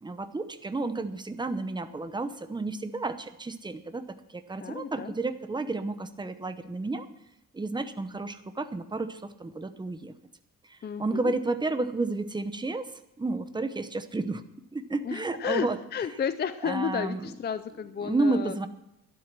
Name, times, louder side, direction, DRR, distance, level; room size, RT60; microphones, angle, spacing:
voice 1, 0.0-4.0 4.3-7.1 7.5-10.1 10.7-12.9 13.2-14.4 14.7-15.8 16.6-17.3 18.0-18.7, right 2 dB, 10° right, 10 dB, 0.8 m, -31 dB
voice 2, 4.6-5.1 10.8-11.3 15.0-18.6, left 7 dB, 30° left, 12 dB, 0.5 m, -32 dB
12.5 x 11.0 x 6.1 m, 0.86 s
cardioid pair, 155°, 36 cm